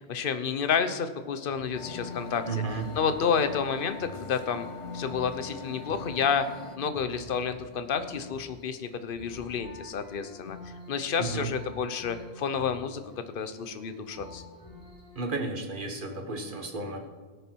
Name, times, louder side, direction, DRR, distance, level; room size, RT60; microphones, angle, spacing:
voice 1, 0.1-2.6 3.0-4.7 4.9-6.4 6.8-10.6 10.9-13.0 13.3-14.4, left 6 dB, 55° left, 10 dB, 1.0 m, -30 dB
sound 1, 1.5-15.3, left 3 dB, 20° left, 3.9 m, -46 dB
sound 2, 1.7-6.8, left 5 dB, 35° left, 0.6 m, -43 dB
voice 2, 2.5-2.8 11.2-11.5 15.1-17.1, right 3 dB, 50° right, 4 dB, 1.5 m, -33 dB
17.5 x 6.8 x 4.6 m, 1.5 s
omnidirectional pair, 1.1 m